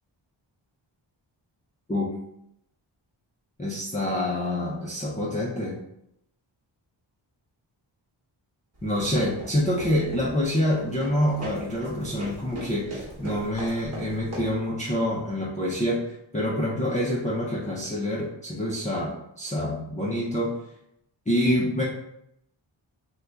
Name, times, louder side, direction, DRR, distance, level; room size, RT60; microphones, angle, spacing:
voice 1, 3.6-5.8 8.8-16.0 16.3-20.5 21.3-21.8, left 1 dB, 15° left, -6 dB, 0.5 m, -26 dB
sound 1, 8.8-14.7, equal, 30° right, 1.2 m, -40 dB
2.6 x 2.3 x 3.4 m, 0.78 s
wide cardioid pair, 65°, 47 cm